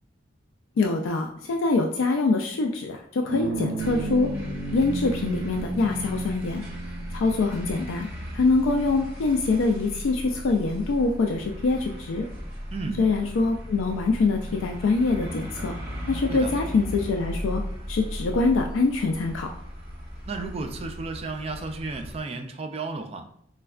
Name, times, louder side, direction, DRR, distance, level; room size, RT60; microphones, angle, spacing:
voice 1, 0.8-4.3 4.7-6.6 7.1-8.1 8.3-12.3 13.0-15.7 16.1-17.6 17.9-19.5, left 3 dB, 90° left, 3 dB, 0.3 m, -24 dB
sound 1, 3.3-9.1, right 3 dB, 90° right, 0.5 m, -34 dB
sound 2, 3.8-22.2, equal, 10° right, 1.3 m, -37 dB
voice 2, 12.7-13.0 16.3-16.5 20.3-23.2, right 3 dB, 30° right, 5 dB, 0.3 m, -33 dB
4.2 x 2.2 x 2.3 m, 0.68 s
head